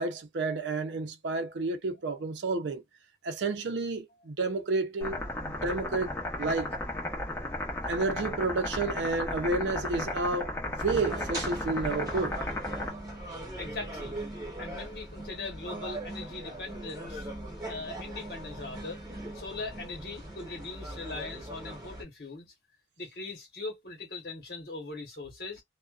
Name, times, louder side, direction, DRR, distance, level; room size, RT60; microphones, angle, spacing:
voice 1, 0.0-2.8 3.2-6.8 7.9-12.4, right 3 dB, 80° right, 0.5 m, -31 dB
sound 1, 5.0-12.9, left 1 dB, 15° left, 0.7 m, -34 dB
sound 2, 10.9-22.0, right 1 dB, 20° right, 1.1 m, -40 dB
voice 2, 13.6-14.2 14.6-17.3 17.7-19.0 19.3-22.5 23.0-25.6, left 3 dB, 60° left, 1.1 m, -40 dB
2.4 x 2.2 x 2.3 m
head